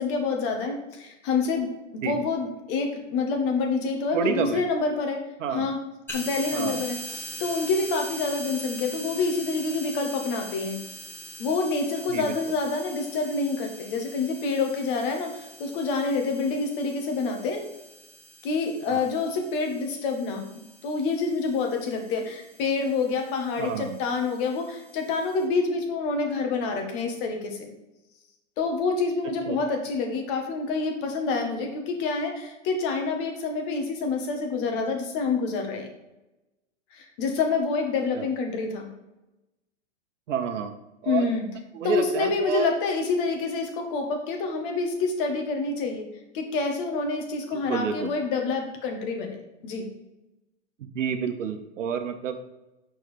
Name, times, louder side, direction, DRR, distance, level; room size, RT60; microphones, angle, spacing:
voice 1, 0.0-5.2 5.5-5.8 6.1-10.8 11.4-17.6 18.4-20.4 20.8-27.7 28.6-35.9 36.9-38.9 41.0-41.4 41.8-46.0 46.3-49.4 49.6-49.9, left 4 dB, 45° left, 3 dB, 1.5 m, -27 dB
voice 2, 4.1-4.6 5.4-5.7 6.5-6.8 12.1-12.3 18.9-19.0 23.6-24.0 29.5-29.6 38.1-38.3 40.3-40.8 41.0-41.3 41.7-42.7 47.5-48.1 50.8-52.3, right 6 dB, 85° right, 6 dB, 0.9 m, -29 dB
sound 1, 6.1-25.4, equal, 5° left, 1.5 m, -43 dB
6.4 x 4.4 x 5.0 m, 1.0 s
hypercardioid pair, 130°, 36 cm